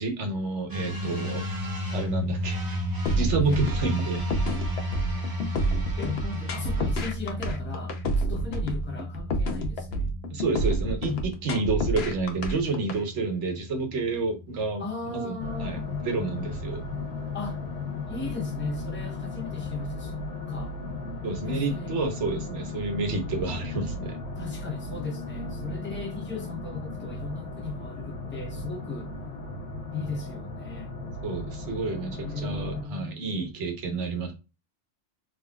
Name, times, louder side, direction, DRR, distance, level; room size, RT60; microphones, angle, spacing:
voice 1, 0.0-1.4 1.9-2.6 3.1-4.2 10.3-14.8 15.1-16.8 21.2-24.2 31.2-34.3, right 3 dB, 75° right, 1.2 m, -29 dB
sound 1, 0.7-18.2, equal, 20° right, 0.7 m, -34 dB
sound 2, 3.1-13.0, right 1 dB, 65° left, 0.9 m, -28 dB
voice 2, 3.4-3.8 6.0-10.1 11.5-11.7 14.8-15.9 17.3-17.6 18.1-20.7 21.4-22.0 22.3-22.6 24.3-29.1 29.9-30.9 32.1-33.2, left 3 dB, 10° left, 0.9 m, -36 dB
sound 3, 15.4-32.9, left 3 dB, 85° left, 1.4 m, -36 dB
3.7 x 3.0 x 2.2 m
omnidirectional pair, 1.2 m